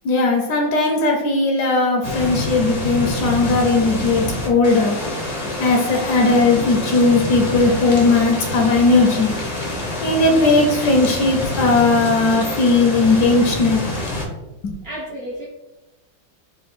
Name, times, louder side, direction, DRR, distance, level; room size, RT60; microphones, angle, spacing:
voice 1, 0.0-5.0 5.6-9.3 10.0-13.9, left 3 dB, 75° left, 1 dB, 1.1 m, -17 dB
sound 1, 2.0-14.2, left 1 dB, 55° left, 0.4 m, -26 dB
voice 2, 14.8-15.5, equal, 75° right, -4 dB, 0.5 m, -32 dB
4.3 x 2.2 x 4.1 m, 1.0 s
omnidirectional pair, 2.0 m